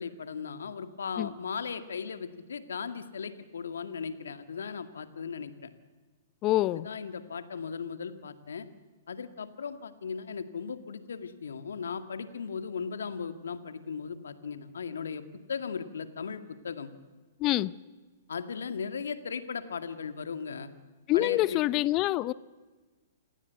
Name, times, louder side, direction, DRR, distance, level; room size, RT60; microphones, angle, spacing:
voice 1, 0.0-5.7 6.7-8.7 9.1-15.2 15.5-16.9 18.3-20.7 21.1-21.6, left 6 dB, 75° left, 2.1 m, -37 dB
voice 2, 6.4-6.9 17.4-17.7 21.1-22.3, left 16 dB, 35° left, 0.7 m, -26 dB
28.0 x 19.0 x 8.2 m
hypercardioid pair, 115°, 0 cm